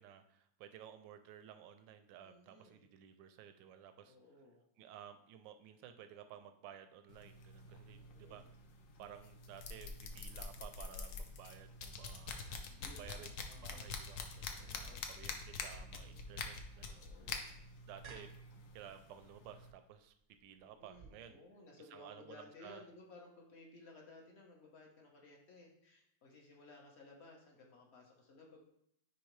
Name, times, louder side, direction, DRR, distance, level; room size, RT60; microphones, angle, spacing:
voice 1, 0.0-4.2 4.8-8.4 9.0-12.4 13.0-17.3 17.8-18.3 18.7-21.4 21.9-22.8, right 9 dB, 85° right, 9 dB, 1.3 m, -55 dB
voice 2, 2.2-2.8 4.0-4.6 7.8-8.5 12.7-15.1 15.9-16.3 16.9-17.9 20.5-28.6, left 2 dB, 40° left, 0 dB, 1.2 m, -59 dB
sound 1, 7.1-19.7, left 4 dB, 60° left, 0.8 m, -47 dB
sound 2, 14.8-21.1, right 4 dB, 45° right, 0.6 m, -60 dB
9.7 x 3.5 x 3.2 m, 0.73 s
omnidirectional pair, 2.0 m